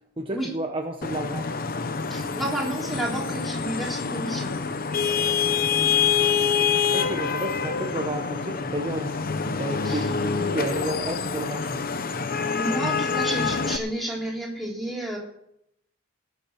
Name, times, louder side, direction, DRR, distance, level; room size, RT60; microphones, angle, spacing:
voice 1, 0.2-1.5 6.9-11.8, right 1 dB, 25° right, 2 dB, 1.0 m, -32 dB
Vehicle horn car horn honking / Traffic noise roadway noise, 1.0-13.8, left 6 dB, 40° left, 0.8 m, -26 dB
voice 2, 2.1-4.5 9.8-10.1 12.6-15.2, right 1 dB, ahead, -3 dB, 3.4 m, -31 dB
18.5 x 7.0 x 6.4 m, 0.78 s
head